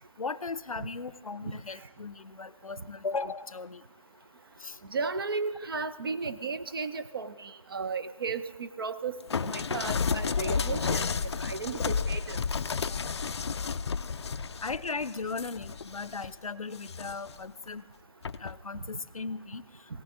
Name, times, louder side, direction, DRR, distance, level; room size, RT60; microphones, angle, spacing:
voice 1, 0.2-3.8 4.6-4.8 14.6-17.9 18.4-19.6, left 4 dB, 85° left, 17 dB, 0.7 m, -37 dB
voice 2, 4.9-11.0 11.4-12.4, right 4 dB, 40° right, 12 dB, 0.7 m, -34 dB
sound 1, 9.3-16.3 16.7-17.4 18.2-18.6, left 5 dB, 50° left, 0.4 m, -32 dB
18.0 x 17.0 x 3.8 m, 1.1 s
figure-of-eight pair, 160°, 18 cm